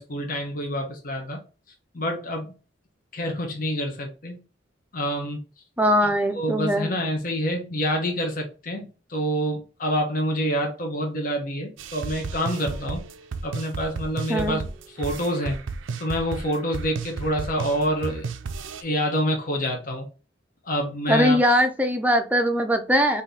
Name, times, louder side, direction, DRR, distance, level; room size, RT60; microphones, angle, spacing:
voice 1, 0.0-1.4 1.9-2.5 3.1-4.4 4.9-5.4 6.0-13.0 13.4-14.6 14.9-15.6 16.0-18.2 18.8-20.1 20.6-21.4, equal, 45° left, 2 dB, 0.9 m, -27 dB
voice 2, 5.8-6.9 14.3-14.6 21.1-23.2, equal, 10° right, 6 dB, 0.5 m, -21 dB
sound 1, 11.8-18.8, right 4 dB, 80° right, 0.5 m, -33 dB
3.7 x 2.7 x 3.8 m, 0.34 s
head